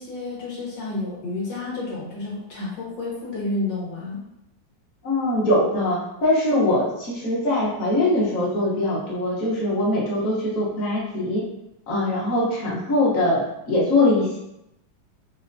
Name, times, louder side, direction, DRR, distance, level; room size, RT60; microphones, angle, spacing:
voice 1, 0.0-4.2, left 2 dB, 70° left, -4 dB, 1.8 m, -30 dB
voice 2, 5.0-11.4 11.9-14.4, left 1 dB, 50° left, -6 dB, 1.3 m, -22 dB
4.3 x 3.4 x 2.6 m, 0.83 s
omnidirectional pair, 2.0 m